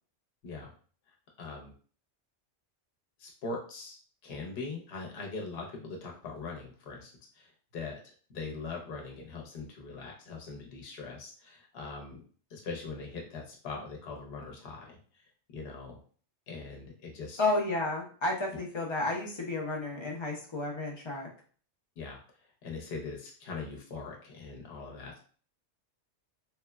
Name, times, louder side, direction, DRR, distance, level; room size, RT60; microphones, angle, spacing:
voice 1, 1.4-1.7 3.2-12.2 12.5-15.0 15.5-16.0 16.5-17.4 22.0-22.2 22.6-25.2, left 4 dB, 60° left, 0 dB, 0.9 m, -41 dB
voice 2, 17.4-21.3, left 2 dB, 40° left, -1 dB, 0.4 m, -32 dB
3.0 x 2.1 x 2.2 m, 0.43 s
omnidirectional pair, 1.2 m